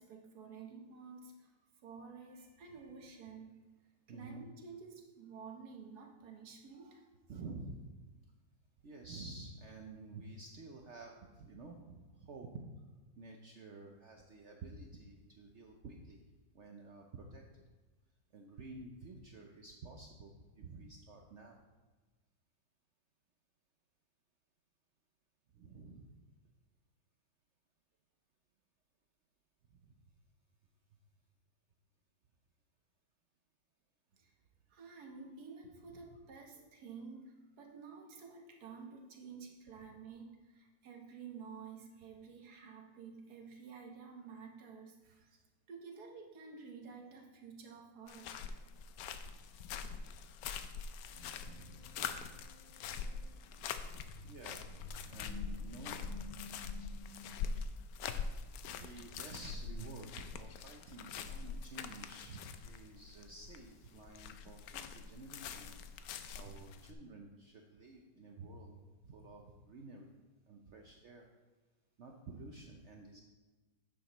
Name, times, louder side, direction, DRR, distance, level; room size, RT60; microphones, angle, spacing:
voice 1, 0.0-1.5 1.8-3.6 4.1-7.1 34.1-34.3 34.7-45.4 45.7-48.5, right 5 dB, 60° right, 2 dB, 1.5 m, -51 dB
voice 2, 4.1-4.4 7.3-7.8 8.8-12.7 13.1-16.2 16.5-17.4 18.3-21.6 25.5-26.2 29.7-30.0 35.9-36.0 51.3-52.1 54.2-56.3 58.7-65.7 66.3-70.1 70.5-71.3 72.0-73.2, right 3 dB, 75° right, 2 dB, 0.6 m, -51 dB
sound 1, 48.1-66.9, left 6 dB, 75° left, 0.8 m, -44 dB
sound 2, 51.1-57.5, left 3 dB, 35° left, 0.9 m, -53 dB
10.0 x 7.2 x 3.0 m, 1.3 s
omnidirectional pair, 2.0 m